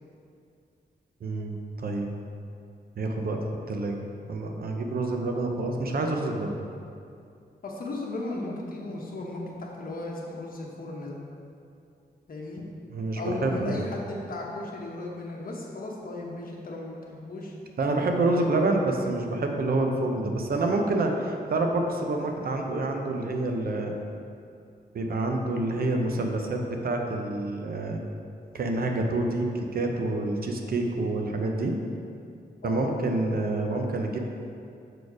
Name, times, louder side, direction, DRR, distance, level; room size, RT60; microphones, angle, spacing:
voice 1, 1.2-2.1 3.0-3.4 3.7-4.0 4.3-6.5 12.9-13.8 17.8-23.9 24.9-28.0 28.5-31.8 32.6-34.2, right 2 dB, 60° right, 3 dB, 0.7 m, -27 dB
voice 2, 7.6-11.2 12.3-12.6 13.2-17.5 18.3-18.5 32.6-32.9, left 2 dB, 55° left, -1 dB, 1.1 m, -36 dB
6.6 x 4.3 x 4.7 m, 2.5 s
wide cardioid pair, 120°, 17 cm